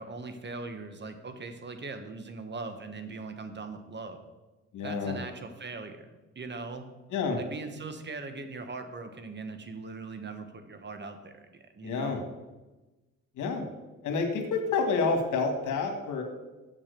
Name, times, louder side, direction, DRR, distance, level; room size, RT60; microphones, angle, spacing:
voice 1, 0.0-4.2 4.8-6.9 7.4-12.3, right 3 dB, 35° right, 8 dB, 1.3 m, -40 dB
voice 2, 4.7-5.2 7.1-7.4 11.8-12.2 13.4-13.7 14.0-16.2, left 4 dB, 80° left, 4 dB, 2.0 m, -28 dB
7.4 x 7.3 x 6.8 m, 1.1 s
cardioid pair, 90°, 30 cm